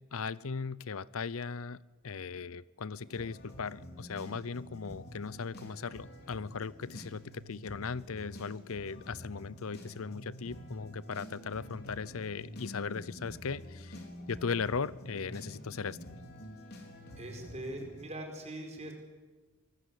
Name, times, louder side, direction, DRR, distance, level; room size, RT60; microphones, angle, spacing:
voice 1, 0.0-1.8 2.0-14.0 14.3-16.0, left 5 dB, 70° left, 20 dB, 0.6 m, -38 dB
sound 1, 3.0-18.1, equal, 45° left, 3.9 m, -48 dB
voice 2, 17.2-18.9, right 1 dB, 30° right, 3 dB, 4.8 m, -42 dB
24.0 x 20.0 x 8.4 m, 1.3 s
head